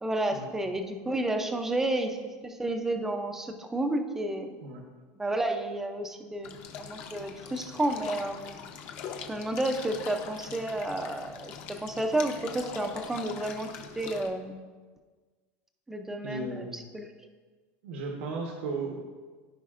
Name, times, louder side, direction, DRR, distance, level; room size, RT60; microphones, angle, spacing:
voice 1, 0.0-2.2 2.4-4.6 5.2-8.6 9.3-13.7 14.0-14.6 15.9-17.1, right 1 dB, 5° right, 5 dB, 0.5 m, -31 dB
sound 1, 6.4-14.3, left 7 dB, 40° left, 0.8 m, -42 dB
voice 2, 16.2-16.8 17.8-19.0, right 3 dB, 70° right, 1 dB, 1.1 m, -35 dB
14.5 x 5.1 x 2.5 m, 1.4 s
supercardioid pair, 170°, 6 cm